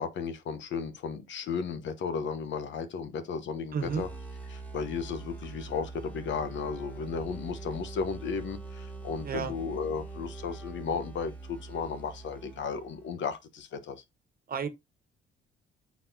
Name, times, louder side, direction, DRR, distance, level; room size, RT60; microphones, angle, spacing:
voice 1, 0.0-4.1 4.5-14.0, left 5 dB, 70° left, 1.1 m, -34 dB
sound 1, 3.7-13.2, right 3 dB, 5° left, 1.6 m, -43 dB
voice 2, 3.7-4.0 9.2-9.5 14.5-14.7, right 6 dB, 45° right, 1.3 m, -31 dB
8.5 x 4.1 x 2.7 m
cardioid pair, 90°, 20 cm